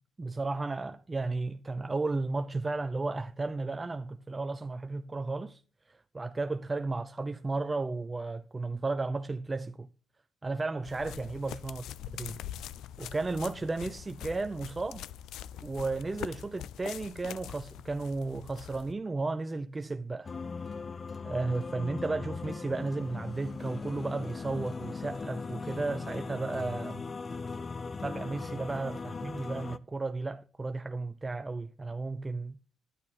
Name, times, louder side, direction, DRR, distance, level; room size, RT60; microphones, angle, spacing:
voice 1, 0.2-5.6 5.9-9.9 10.4-11.8 12.2-12.4 13.0-15.0 15.6-20.3 21.2-27.0 28.0-32.7, right 3 dB, 25° right, 0.5 m, -34 dB
sound 1, 10.8-18.9, left 11 dB, 85° left, 0.4 m, -43 dB
sound 2, 20.2-29.8, left 4 dB, 35° left, 0.6 m, -39 dB
11.0 x 10.5 x 4.1 m
cardioid pair, 90°, 0 cm